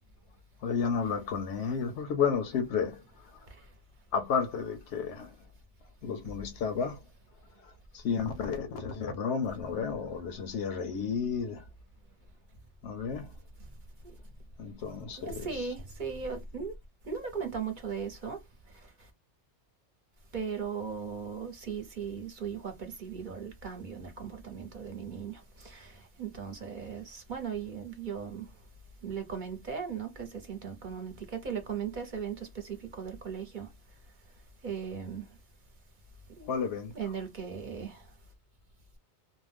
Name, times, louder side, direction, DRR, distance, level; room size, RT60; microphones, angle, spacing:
voice 1, 0.6-3.5 4.1-5.4 6.0-7.0 7.6-11.7 12.8-13.3 14.6-15.7 36.5-36.9, left 6 dB, 80° left, 0.9 m, -32 dB
voice 2, 15.2-16.7 17.0-18.4 20.3-28.4 29.0-33.7 34.6-35.2 36.4-36.5 36.9-38.0, right 6 dB, 50° right, 0.8 m, -38 dB
2.4 x 2.2 x 3.3 m
omnidirectional pair, 1.2 m